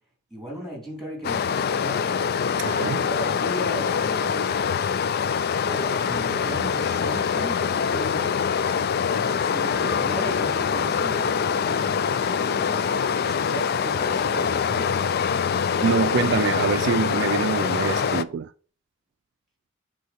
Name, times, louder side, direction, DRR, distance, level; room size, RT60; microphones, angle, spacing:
voice 1, 0.3-2.1 2.7-4.6 5.7-8.4 9.2-12.8 13.2-15.3, equal, ahead, 2.8 m, -36 dB
Stream, 1.2-18.2, left 6 dB, 50° left, 0.4 m, -24 dB
voice 2, 2.6-3.1 9.8-9.9 15.8-18.5, right 6 dB, 65° right, 0.3 m, -25 dB
8.3 x 3.7 x 5.8 m
head